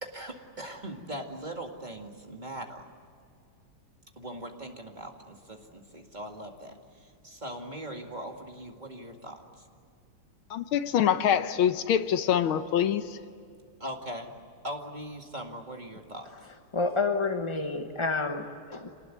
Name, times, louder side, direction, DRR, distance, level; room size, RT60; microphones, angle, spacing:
voice 1, 0.0-2.9 4.2-9.7 13.8-14.3 14.6-16.3, right 1 dB, 20° right, 2 dB, 2.1 m, -40 dB
voice 2, 10.5-13.2, left 9 dB, 75° left, 11 dB, 1.6 m, -25 dB
voice 3, 16.7-18.9, left 3 dB, 25° left, 5 dB, 0.6 m, -29 dB
27.5 x 19.5 x 9.2 m, 2.5 s
omnidirectional pair, 2.4 m